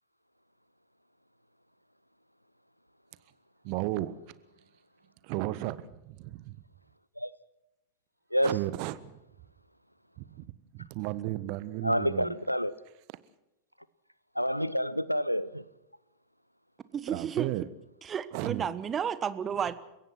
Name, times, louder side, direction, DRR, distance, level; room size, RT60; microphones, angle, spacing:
voice 1, 3.6-4.2 5.2-6.6 8.4-9.1 10.2-10.5 10.7-12.3 17.1-17.7 18.3-18.7, right 17 dB, 45° right, 1.3 m, -34 dB
voice 2, 11.8-12.8 14.3-15.7, equal, 90° left, 0.8 m, -28 dB
voice 3, 16.9-17.5 18.0-19.7, right 7 dB, 25° right, 1.4 m, -32 dB
30.0 x 16.5 x 6.2 m
figure-of-eight pair, 90°, 0 cm